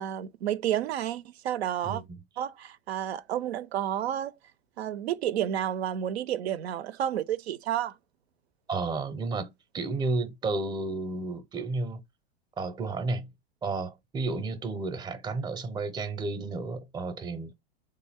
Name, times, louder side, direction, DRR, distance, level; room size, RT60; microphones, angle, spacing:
voice 1, 0.0-2.0 2.4-4.3 4.8-7.9, right 10 dB, 90° right, 0.5 m, -30 dB
voice 2, 8.7-12.0 12.6-13.3 13.6-17.5, right 3 dB, 15° right, 0.5 m, -32 dB
3.5 x 2.2 x 3.4 m
hypercardioid pair, 120°, 31 cm